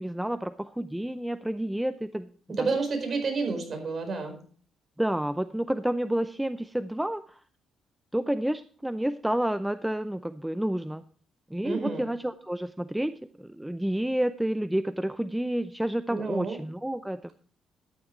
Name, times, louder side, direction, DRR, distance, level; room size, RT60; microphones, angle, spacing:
voice 1, 0.0-2.3 2.6-2.7 5.0-7.4 8.1-11.0 11.5-17.3, right 1 dB, 5° right, 12 dB, 0.5 m, -30 dB
voice 2, 2.5-4.4 11.6-12.0 16.1-16.6, right 4 dB, 45° right, 4 dB, 4.7 m, -30 dB
12.5 x 10.5 x 3.2 m, 0.43 s
cardioid pair, 90°, 0 cm